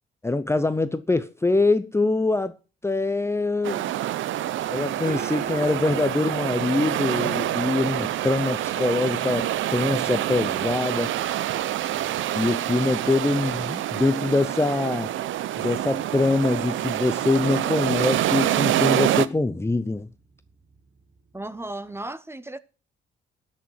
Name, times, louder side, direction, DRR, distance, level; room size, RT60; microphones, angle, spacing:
voice 1, 0.2-2.5 2.8-3.8 4.7-11.1 12.3-15.1 15.6-20.1, left 2 dB, 15° left, 0.8 m, -24 dB
sound 1, 3.6-19.3, right 13 dB, 75° right, 0.8 m, -26 dB
sound 2, 4.6-22.1, right 7 dB, 40° right, 1.7 m, -44 dB
voice 2, 21.3-22.6, right 1 dB, 10° right, 1.1 m, -35 dB
13.0 x 6.6 x 7.8 m
cardioid pair, 90°, 20 cm